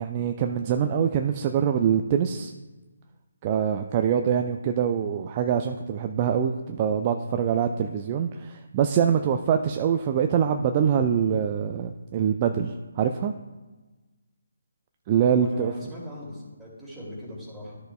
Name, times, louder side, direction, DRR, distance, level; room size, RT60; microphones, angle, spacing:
voice 1, 0.0-2.5 3.4-13.3 15.1-15.7, right 8 dB, 30° right, 6 dB, 0.4 m, -24 dB
voice 2, 15.3-17.8, left 1 dB, 5° right, -8 dB, 2.7 m, -39 dB
13.0 x 6.5 x 2.3 m, 1.2 s
figure-of-eight pair, 145°, 0 cm